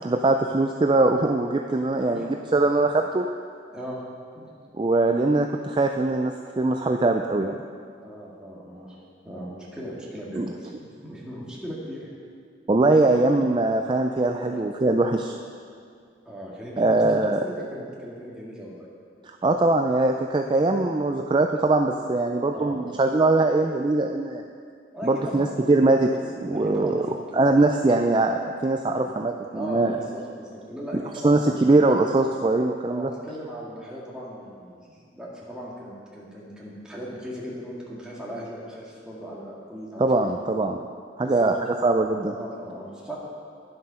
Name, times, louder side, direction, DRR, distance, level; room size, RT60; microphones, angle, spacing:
voice 1, 0.0-3.3 4.7-7.6 10.4-10.5 12.7-15.4 16.8-17.5 19.4-24.4 25.0-26.1 26.4-27.0 27.3-30.0 31.2-33.1 40.0-40.8 41.2-42.4, right 2 dB, 25° right, 4 dB, 0.3 m, -22 dB
voice 2, 8.0-9.0 9.2-12.1 14.5-14.6 16.3-18.9 22.5-22.8 24.9-25.6 26.5-27.6 28.9-29.1 29.5-31.6 32.9-40.3 41.2-41.5 42.4-43.2, equal, 5° right, -6 dB, 1.9 m, -38 dB
11.0 x 7.7 x 5.7 m, 2.2 s
head